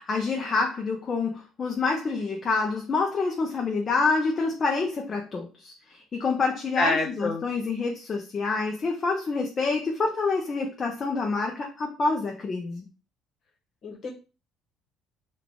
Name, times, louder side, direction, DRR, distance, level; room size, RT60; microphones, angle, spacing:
voice 1, 0.0-12.9, left 4 dB, 25° left, 2 dB, 0.5 m, -27 dB
voice 2, 6.7-7.4 13.8-14.1, left 2 dB, 40° left, 0 dB, 1.1 m, -26 dB
3.5 x 2.3 x 3.5 m, 0.33 s
cardioid pair, 165°, 0 cm